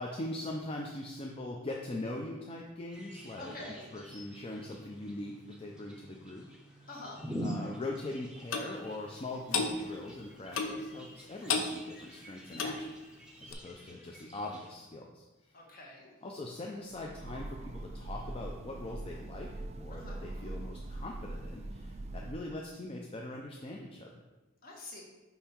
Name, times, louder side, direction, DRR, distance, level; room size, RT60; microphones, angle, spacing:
voice 1, 0.0-6.4 7.4-12.9 13.4-15.6 16.2-19.5 19.8-24.2, left 2 dB, 30° left, -1 dB, 0.4 m, -41 dB
sound 1, 2.9-14.7, equal, 5° right, 0.7 m, -46 dB
voice 2, 3.4-3.8 6.9-7.2 15.5-16.1 19.9-20.2 24.6-25.0, left 2 dB, 45° left, -2 dB, 1.3 m, -46 dB
Clock, 8.5-8.7 9.5-9.7 10.5-10.8 11.5-11.7 12.5-12.8 13.5-13.6, left 5 dB, 75° left, 0.6 m, -31 dB
Train, 16.9-22.6, right 2 dB, 30° right, 0.4 m, -42 dB
5.5 x 4.4 x 4.4 m, 1.1 s
head